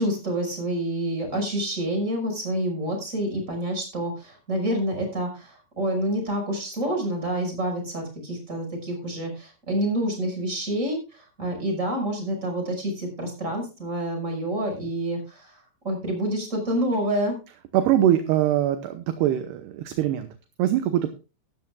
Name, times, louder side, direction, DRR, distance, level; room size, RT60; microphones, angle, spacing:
voice 1, 0.0-17.4, right 1 dB, 15° right, 3 dB, 5.5 m, -28 dB
voice 2, 17.7-20.3 20.6-21.1, right 11 dB, 75° right, 9 dB, 2.5 m, -22 dB
16.5 x 12.5 x 2.3 m, 0.31 s
omnidirectional pair, 5.6 m